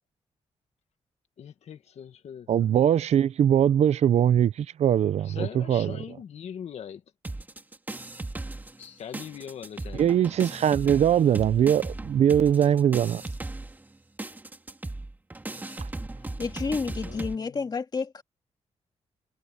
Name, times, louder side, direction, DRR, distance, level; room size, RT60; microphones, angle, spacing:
voice 1, 1.4-2.7 5.2-7.0 8.8-10.1 16.2-16.4 17.0-17.6, left 8 dB, 75° left, 1.9 m, -41 dB
voice 2, 2.5-5.9 10.0-13.2, right 9 dB, 75° right, 0.7 m, -21 dB
sound 1, 7.2-8.9 9.1-17.4, right 2 dB, 15° right, 2.2 m, -37 dB
voice 3, 16.4-18.2, left 4 dB, 35° left, 2.5 m, -30 dB
wide cardioid pair, 130°, 11 cm